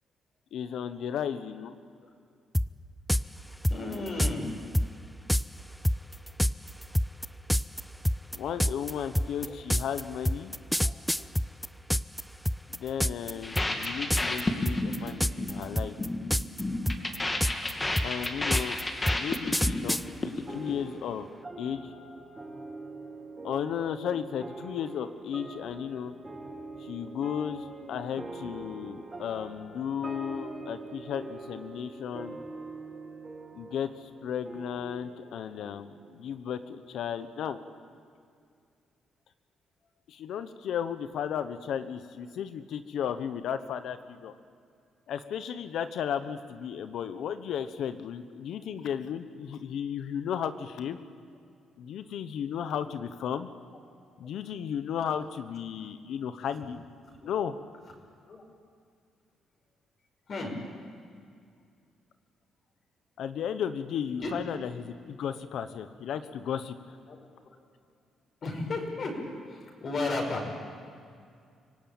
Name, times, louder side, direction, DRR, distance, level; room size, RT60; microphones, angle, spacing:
voice 1, 0.5-1.7 8.3-10.6 12.7-15.9 18.0-18.8 19.1-21.3 21.6-21.9 23.4-26.1 26.8-32.4 33.5-37.6 40.1-44.3 45.1-51.0 51.8-53.5 54.2-56.8 57.2-57.5 63.2-66.8, left 8 dB, 75° left, 10 dB, 1.1 m, -34 dB
sound 1, 2.5-2.7 3.1-3.2 3.6-4.3 4.7-4.9 5.3-5.4 5.8-12.2 12.5-13.3 13.6-13.9 14.1-14.4 14.7-15.5 15.8-16.6 16.9-20.0, equal, 5° left, 0.5 m, -26 dB
voice 2, 3.7-4.5 9.4-9.5 10.8-11.2 57.1-57.3 58.3-58.4 60.3-60.5 64.2-64.3 66.2-66.3 67.1-67.2 67.5-67.6 68.4-69.2 69.5-70.4, left 2 dB, 50° left, 0 dB, 5.9 m, -34 dB
sound 2, 13.4-20.7, left 2 dB, 20° left, 2.6 m, -32 dB
sound 3, 20.5-37.3, right 3 dB, 25° right, 5.3 m, -44 dB
25.0 x 17.5 x 9.0 m, 2.2 s
cardioid pair, 90°, 0 cm